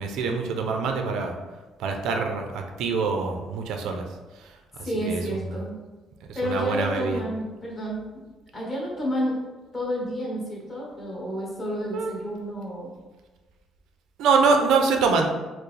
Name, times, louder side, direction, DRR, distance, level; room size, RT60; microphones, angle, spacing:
voice 1, 0.0-1.3 1.8-4.0 5.1-5.4 6.4-7.2 11.9-12.1 14.2-15.3, right 4 dB, 80° right, 4 dB, 0.4 m, -24 dB
voice 2, 4.8-5.8 6.3-8.0 8.5-9.4 9.7-13.0, equal, 25° left, -5 dB, 1.2 m, -30 dB
4.5 x 2.0 x 3.2 m, 1.2 s
cardioid pair, 155°, 0 cm